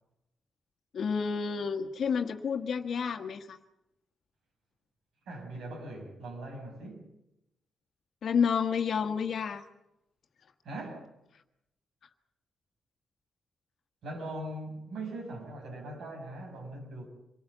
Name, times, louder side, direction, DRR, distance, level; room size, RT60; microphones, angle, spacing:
voice 1, 0.9-3.6 8.2-9.6, left 6 dB, 55° left, 1.4 m, -30 dB
voice 2, 5.3-7.1 10.6-11.1 14.0-17.1, right 1 dB, 80° right, 6.3 m, -40 dB
26.0 x 19.0 x 8.1 m
wide cardioid pair, 165°, 0 cm